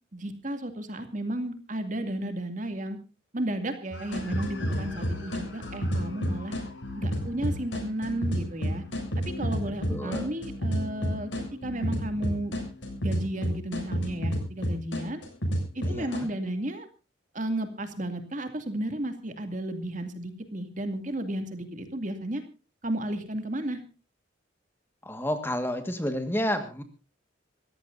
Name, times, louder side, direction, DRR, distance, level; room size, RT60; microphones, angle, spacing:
voice 1, 0.1-3.0 3.3-6.6 7.0-8.8 9.4-11.3 11.6-12.5 13.0-15.2 15.7-16.9 17.3-22.4 22.8-23.8, right 1 dB, 40° right, 7 dB, 2.4 m, -33 dB
sound 1, 3.9-16.2, equal, 70° left, 7.1 m, -31 dB
voice 2, 9.9-10.3 15.8-16.3 25.0-26.8, equal, 10° left, 8 dB, 1.6 m, -30 dB
26.0 x 15.0 x 2.6 m, 0.31 s
head